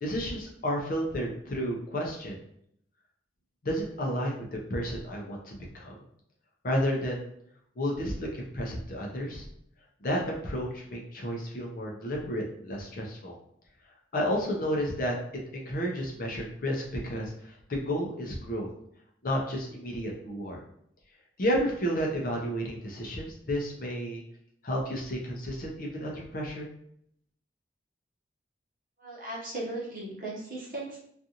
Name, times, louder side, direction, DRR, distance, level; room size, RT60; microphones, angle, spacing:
voice 1, 0.0-2.4 3.6-6.0 6.6-7.3 7.8-9.4 10.0-13.4 14.1-18.7 19.2-20.6 21.4-24.2 24.6-26.7, equal, 50° left, -1 dB, 0.5 m, -31 dB
voice 2, 29.0-31.0, right 2 dB, 45° right, -5 dB, 0.9 m, -37 dB
2.5 x 2.4 x 2.8 m, 0.71 s
head